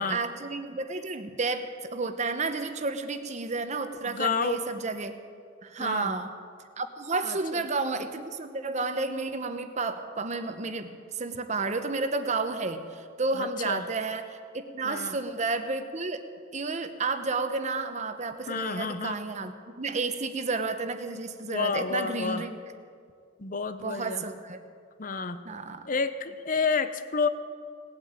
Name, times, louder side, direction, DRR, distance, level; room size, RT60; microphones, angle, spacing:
voice 1, 0.0-5.2 5.6-6.3 6.8-16.2 16.5-22.5 23.8-24.6 25.4-25.9, right 3 dB, 35° right, 9 dB, 0.8 m, -31 dB
voice 2, 4.0-4.6 5.8-6.2 7.2-7.6 13.3-13.9 14.8-15.2 18.5-19.2 21.5-22.4 23.4-24.3 25.0-25.4 25.9-27.3, left 5 dB, 40° left, 11 dB, 0.8 m, -30 dB
18.0 x 8.7 x 8.7 m, 2.2 s
head